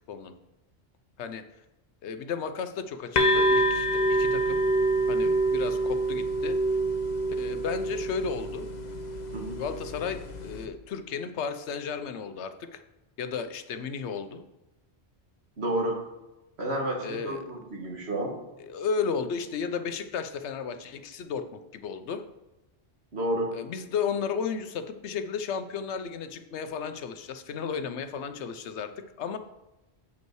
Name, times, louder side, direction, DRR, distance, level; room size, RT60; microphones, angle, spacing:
voice 1, 2.0-4.6 5.1-6.6 7.4-8.7 9.6-12.8 13.2-14.4 17.0-17.5 18.6-22.2 23.5-28.9 29.2-29.4, left 6 dB, 85° left, 9 dB, 1.0 m, -34 dB
sound 1, 3.1-10.6, right 1 dB, 50° left, 0.7 m, -26 dB
voice 2, 15.6-16.0 16.6-18.3 23.1-23.5, right 1 dB, 70° right, -1 dB, 1.9 m, -30 dB
8.1 x 5.3 x 4.7 m, 0.99 s
omnidirectional pair, 1.1 m